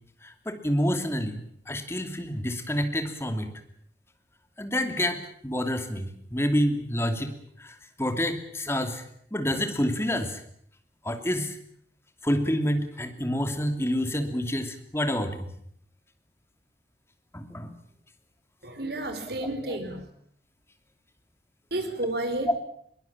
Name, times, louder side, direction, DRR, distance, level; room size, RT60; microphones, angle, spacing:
voice 1, 0.2-3.5 4.6-9.0 9.3-10.4 11.0-11.6 12.2-15.5 17.3-17.7 19.7-19.8, equal, 15° left, 7 dB, 2.7 m, -28 dB
voice 2, 18.6-20.1 21.7-22.5, right 1 dB, 60° right, 7 dB, 4.7 m, -31 dB
22.5 x 20.0 x 8.8 m, 0.68 s
head